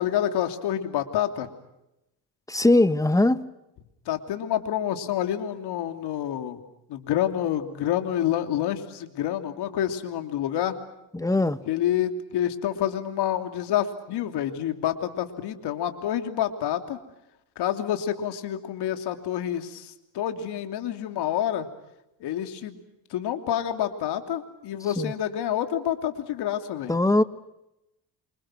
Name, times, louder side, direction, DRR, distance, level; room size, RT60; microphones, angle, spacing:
voice 1, 0.0-1.5 4.1-6.6 6.9-10.8 11.7-17.0 17.6-21.7 22.2-22.8 23.1-26.9, left 11 dB, 70° left, 3.0 m, -28 dB
voice 2, 2.5-3.4 11.1-11.6 25.0-25.1 26.9-27.2, left 2 dB, 10° left, 1.3 m, -20 dB
28.0 x 26.5 x 6.3 m
cardioid pair, 95°, 41 cm